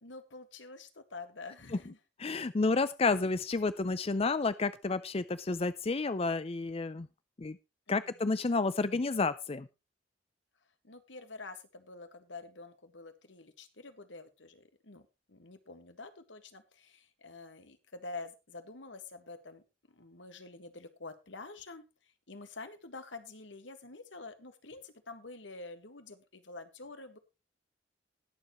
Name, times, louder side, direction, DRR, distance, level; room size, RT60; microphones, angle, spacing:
voice 1, 0.0-2.0 7.9-8.2 10.8-21.8 22.3-27.2, left 3 dB, 80° left, 9 dB, 1.8 m, -48 dB
voice 2, 2.2-7.1 7.4-7.6 7.9-9.7, left 3 dB, 30° left, 14 dB, 0.5 m, -30 dB
20.0 x 7.2 x 3.1 m, 0.27 s
head